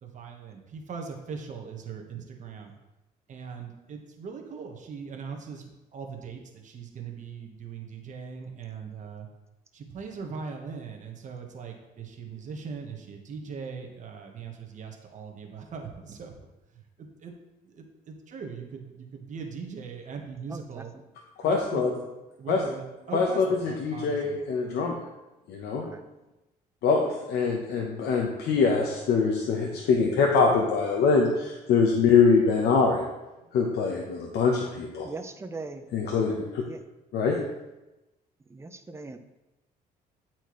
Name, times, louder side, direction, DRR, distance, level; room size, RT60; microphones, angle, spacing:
voice 1, 0.0-2.7 3.3-5.6 5.9-9.3 9.7-16.3 17.0-17.3 17.7-20.9 21.4-21.9 22.4-24.3, right 5 dB, 45° right, 2 dB, 1.2 m, -40 dB
voice 2, 20.5-20.8 23.5-23.6 25.8-26.0 35.0-35.8 36.7-36.8 37.3-37.4 38.5-39.2, right 3 dB, 15° right, 8 dB, 0.6 m, -40 dB
voice 3, 21.4-21.9 22.5-22.6 23.1-25.0 25.5-25.8 26.8-33.1 33.5-35.1 35.9-36.6 37.1-37.4, left 5 dB, 70° left, 0 dB, 0.9 m, -24 dB
10.0 x 4.4 x 3.1 m, 1.0 s
cardioid pair, 110°, 17 cm